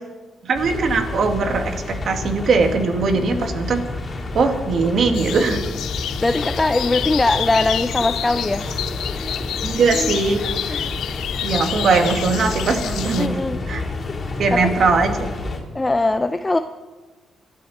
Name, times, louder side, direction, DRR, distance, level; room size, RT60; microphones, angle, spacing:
voice 1, 0.4-3.8 4.3-5.6 9.6-10.4 11.4-13.3 13.7-13.8 14.4-15.1, right 4 dB, 55° right, 5 dB, 2.2 m, -20 dB
sound 1, 0.5-15.6, left 3 dB, 35° left, 3.8 m, -29 dB
voice 2, 3.1-3.5 6.2-8.7 10.7-10.9 13.2-13.6 14.5-14.7 15.7-16.6, left 2 dB, 15° left, 9 dB, 0.6 m, -21 dB
sound 2, 5.1-13.3, left 10 dB, 80° left, 0.6 m, -29 dB
26.0 x 12.5 x 4.4 m, 1.3 s
cardioid pair, 110°, 0 cm